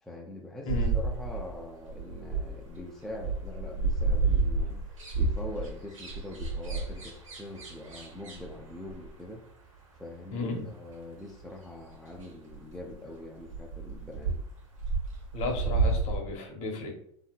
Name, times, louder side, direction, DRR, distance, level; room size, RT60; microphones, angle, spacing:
voice 1, 0.0-4.8 5.2-9.4 10.0-14.4, left 1 dB, ahead, -2 dB, 0.4 m, -43 dB
sound 1, 0.7-2.8 3.1-9.1 11.4-11.5 11.9-12.0 12.2-12.3 12.5-12.9 13.2-14.5 14.7-16.2, right 3 dB, 85° right, 0.8 m, -30 dB
voice 2, 10.3-10.6 15.3-16.9, left 3 dB, 45° left, 2 dB, 0.9 m, -34 dB
2.8 x 2.8 x 2.2 m, 0.68 s
hypercardioid pair, 85°, 16 cm